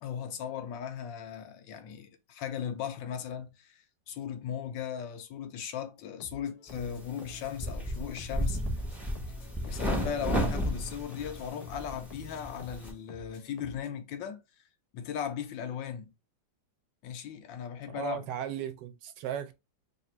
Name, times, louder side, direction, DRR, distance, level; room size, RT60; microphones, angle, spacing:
voice 1, 0.0-8.6 9.6-14.4 14.9-16.1 17.0-18.2, left 8 dB, 90° left, 1.4 m, -37 dB
sound 1, 6.2-14.0, left 3 dB, 55° left, 0.9 m, -51 dB
sound 2, 6.7-12.9, equal, ahead, 0.3 m, -34 dB
voice 2, 17.9-19.5, right 10 dB, 75° right, 1.2 m, -36 dB
3.4 x 2.4 x 4.3 m
omnidirectional pair, 2.0 m